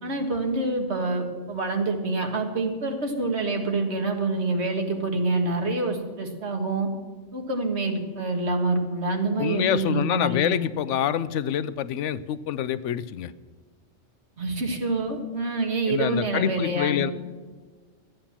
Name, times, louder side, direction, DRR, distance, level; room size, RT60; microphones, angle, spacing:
voice 1, 0.0-6.9 7.3-10.6 14.4-17.1, right 2 dB, 65° right, 3 dB, 1.9 m, -26 dB
voice 2, 9.4-13.3 15.9-17.1, left 10 dB, 80° left, 15 dB, 0.9 m, -26 dB
13.0 x 8.9 x 7.2 m, 1.4 s
omnidirectional pair, 1.2 m